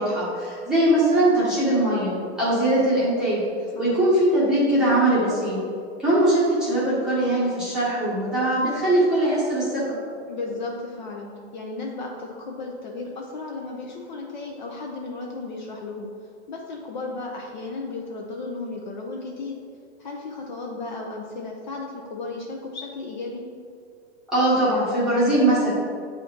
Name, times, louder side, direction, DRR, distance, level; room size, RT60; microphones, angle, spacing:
voice 1, 0.0-3.4 3.8-5.6 6.0-9.8 24.3-25.7, right 1 dB, ahead, -11 dB, 1.0 m, -21 dB
voice 2, 10.3-16.1 16.5-19.6 20.0-23.5, left 3 dB, 45° left, -1 dB, 0.5 m, -34 dB
7.8 x 2.8 x 4.3 m, 2.3 s
hypercardioid pair, 170°, 34 cm